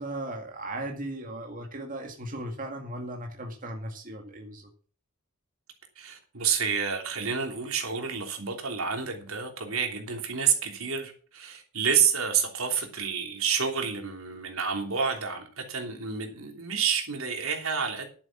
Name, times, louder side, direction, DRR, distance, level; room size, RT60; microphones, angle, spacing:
voice 1, 0.0-4.7, right 1 dB, 40° right, 2 dB, 2.1 m, -37 dB
voice 2, 6.0-18.0, right 6 dB, 80° right, 4 dB, 3.1 m, -29 dB
11.0 x 8.7 x 6.0 m, 0.40 s
head